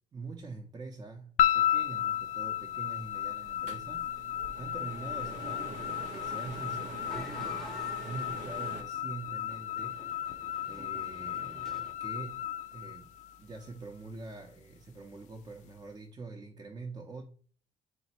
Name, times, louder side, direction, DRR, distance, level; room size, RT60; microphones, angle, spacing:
voice 1, 0.1-10.1 10.7-17.2, right 3 dB, 30° right, 0.6 m, -45 dB
sound 1, 1.4-13.7, left 11 dB, 80° left, 0.4 m, -34 dB
sound 2, 3.0-8.8, right 5 dB, 90° right, 0.6 m, -46 dB
sound 3, 5.2-11.9, equal, 5° left, 0.7 m, -50 dB
4.1 x 2.1 x 4.2 m
cardioid pair, 100°, 13 cm